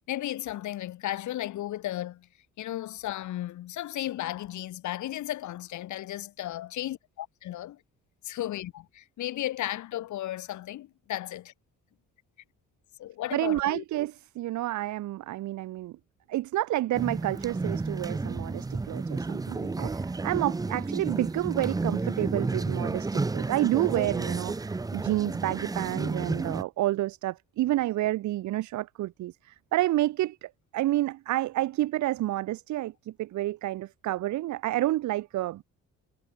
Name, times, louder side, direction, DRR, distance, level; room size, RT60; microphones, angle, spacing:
voice 1, 0.1-2.3 2.6-7.8 8.2-11.4 13.0-13.8, left 14 dB, 75° left, 1.3 m, -34 dB
voice 2, 13.3-16.0 16.3-35.6, right 15 dB, 70° right, 0.7 m, -29 dB
sound 1, 16.9-26.6, right 3 dB, 10° right, 0.5 m, -31 dB
cardioid pair, 90°, 30 cm